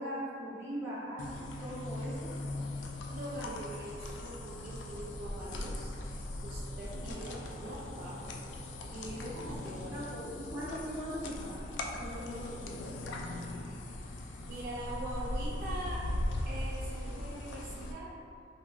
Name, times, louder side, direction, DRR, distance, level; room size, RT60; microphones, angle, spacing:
voice 1, 0.0-2.3 9.9-11.6 12.0-12.8, equal, 15° right, -9 dB, 0.7 m, -40 dB
sound 1, 1.2-17.9, left 1 dB, 90° left, 0.3 m, -39 dB
voice 2, 3.1-8.3 8.9-10.0 14.4-16.0 16.5-18.1, right 1 dB, 55° right, -5 dB, 0.4 m, -43 dB
3.6 x 2.2 x 2.4 m, 2.4 s
head